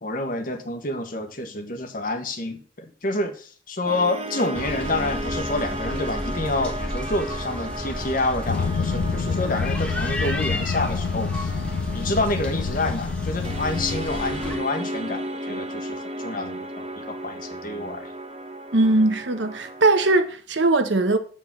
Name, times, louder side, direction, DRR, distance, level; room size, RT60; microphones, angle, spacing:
voice 1, 0.0-11.5 11.9-18.1, left 2 dB, 45° left, 1.3 m, -28 dB
sound 1, 3.9-20.2, equal, 30° right, 0.9 m, -34 dB
sound 2, 4.5-14.6, left 1 dB, 5° left, 1.3 m, -32 dB
sound 3, 8.5-14.0, left 5 dB, 85° left, 0.4 m, -28 dB
voice 2, 18.7-21.2, right 2 dB, 65° right, 1.0 m, -20 dB
7.7 x 4.8 x 7.3 m
head